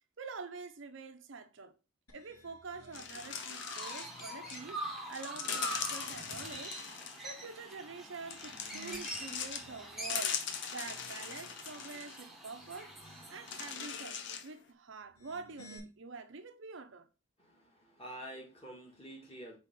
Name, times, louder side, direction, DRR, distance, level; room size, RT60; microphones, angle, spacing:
voice 1, 0.2-1.7 2.1-4.8 5.1-6.8 7.2-10.4 10.7-12.9 13.3-14.2 14.4-17.1, right 4 dB, 60° right, 0.6 m, -46 dB
sound 1, 2.1-3.4 3.9-5.1 5.6-6.7 8.2-10.3 10.8-11.9 12.4-13.5 15.0-15.8, equal, 85° left, 2.8 m, -58 dB
sound 2, 2.9-4.6 5.1-7.3 8.3-9.7 10.0-12.2 12.8-12.9 13.5-14.5, left 7 dB, 55° left, 0.7 m, -40 dB
Chirp tweet, 3.2-13.7, right 2 dB, ahead, 1.0 m, -45 dB
voice 2, 17.4-19.6, right 1 dB, 25° left, 1.9 m, -48 dB
4.4 x 4.2 x 5.2 m
head